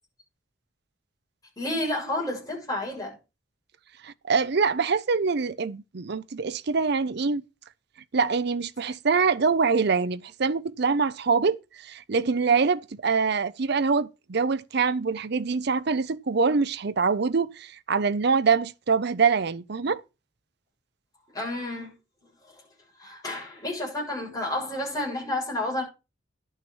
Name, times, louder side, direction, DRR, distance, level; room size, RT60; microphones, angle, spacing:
voice 1, 1.6-3.1 21.3-21.9 23.0-25.8, left 1 dB, 20° left, 6.8 m, -30 dB
voice 2, 4.0-7.4 8.1-20.0, right 5 dB, 55° right, 0.6 m, -24 dB
11.0 x 6.4 x 6.1 m
head